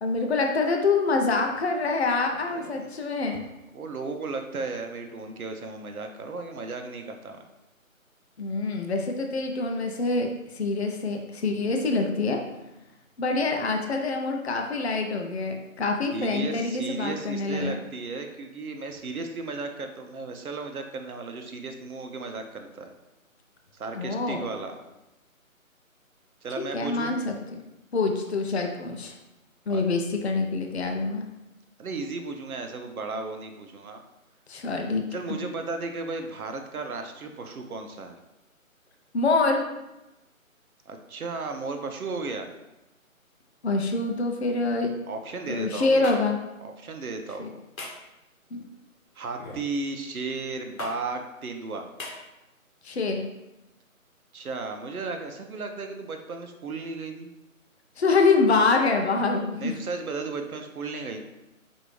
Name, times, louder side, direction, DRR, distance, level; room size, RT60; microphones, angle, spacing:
voice 1, 0.0-3.4 8.4-10.3 10.5-12.4 13.2-17.7 23.9-24.5 26.7-27.6 27.9-29.1 29.7-31.2 34.5-35.1 39.1-39.6 43.6-44.9 45.5-46.4 47.4-47.5 48.5-48.6 52.8-53.3 58.0-59.7, left 3 dB, 50° left, 3 dB, 0.5 m, -25 dB
voice 2, 2.3-2.9 3.7-7.4 16.1-22.9 23.7-24.8 26.4-27.1 29.7-29.8 31.8-34.0 35.1-38.2 40.9-42.5 45.1-46.0 46.6-47.6 49.2-51.9 54.3-57.3 59.6-61.2, right 3 dB, 85° right, 5 dB, 0.8 m, -35 dB
sound 1, 46.0-46.2 47.8-48.1 49.4-49.7 50.8-51.0 52.0-52.2, left 2 dB, 75° left, 1.0 m, -36 dB
5.0 x 2.7 x 3.1 m, 0.97 s
figure-of-eight pair, 170°, 42 cm